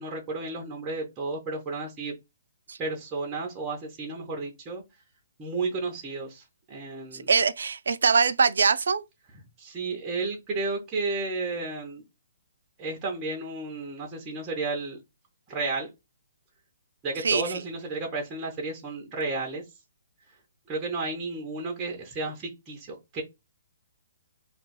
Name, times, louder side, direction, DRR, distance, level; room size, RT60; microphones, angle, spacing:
voice 1, 0.0-2.1 2.8-4.8 5.4-7.3 9.6-12.0 12.8-15.0 15.5-15.9 17.0-19.6 20.7-23.2, right 3 dB, 15° right, 0.6 m, -32 dB
voice 2, 7.1-9.0 17.2-17.5, right 5 dB, 80° right, 0.3 m, -23 dB
2.3 x 2.3 x 4.0 m
hypercardioid pair, 175°, 0 cm